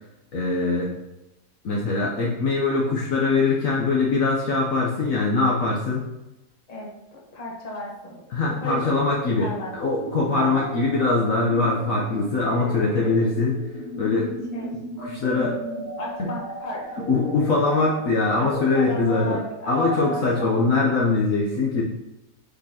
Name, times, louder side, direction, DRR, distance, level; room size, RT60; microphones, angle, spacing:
voice 1, 0.3-1.0 1.6-6.1 8.3-9.5 9.7-13.6 14.0-14.3 15.0-15.5 16.2-16.3 17.1-19.4 19.7-21.8, left 3 dB, 60° left, -3 dB, 1.2 m, -22 dB
voice 2, 6.7-8.8 9.4-9.7 10.2-10.6 12.5-13.3 14.5-14.8 15.3-17.6 18.4-20.6, equal, 25° left, -3 dB, 1.2 m, -34 dB
sound 1, 8.7-20.6, right 1 dB, 25° right, 1.5 m, -37 dB
8.1 x 4.3 x 2.9 m, 0.96 s
omnidirectional pair, 1.8 m